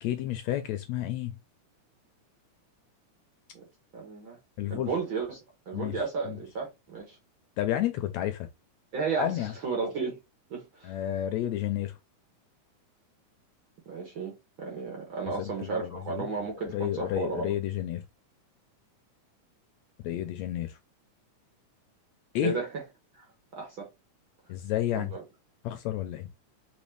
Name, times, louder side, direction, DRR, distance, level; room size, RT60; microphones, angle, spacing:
voice 1, 0.0-1.3 4.6-4.9 5.7-6.4 7.6-8.5 9.2-9.5 10.8-12.0 15.4-16.3 16.6-18.0 20.0-20.8 22.3-22.6 24.5-25.1 25.6-26.3, left 12 dB, 80° left, 1.7 m, -31 dB
voice 2, 3.9-4.4 4.7-5.4 5.7-7.2 8.9-10.2 10.5-10.9 13.9-17.5 22.4-22.7 23.5-23.9 24.9-25.2, right 4 dB, 55° right, 1.5 m, -33 dB
4.1 x 4.1 x 3.2 m
omnidirectional pair, 3.5 m